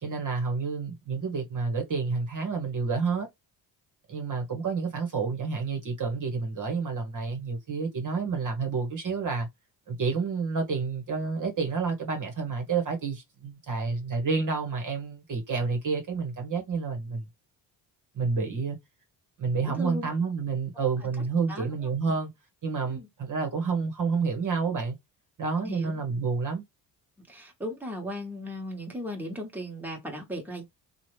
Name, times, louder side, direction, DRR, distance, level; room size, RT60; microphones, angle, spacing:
voice 1, 0.0-3.3 4.1-9.5 9.9-17.3 18.1-18.8 19.4-22.3 22.6-25.0 25.4-26.6, right 4 dB, 40° right, 1.2 m, -29 dB
voice 2, 19.6-20.1 20.8-20.9 21.5-21.6 22.9-23.1 25.6-26.0 27.3-30.6, equal, 5° right, 1.3 m, -36 dB
2.9 x 2.4 x 3.1 m
supercardioid pair, 75°, 45 cm